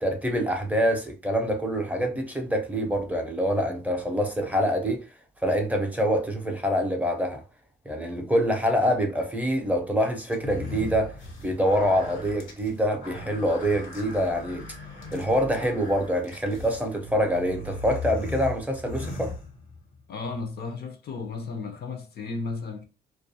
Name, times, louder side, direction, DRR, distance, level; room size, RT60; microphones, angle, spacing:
voice 1, 0.0-5.0 5.4-7.4 7.9-11.2 11.4-14.6 15.1-19.3, equal, 10° right, 0.6 m, -25 dB
sound 1, 10.3-20.0, left 3 dB, 80° left, 0.9 m, -38 dB
voice 2, 20.1-22.9, left 4 dB, 55° left, 0.6 m, -34 dB
2.3 x 2.3 x 2.7 m
cardioid pair, 90°, 20 cm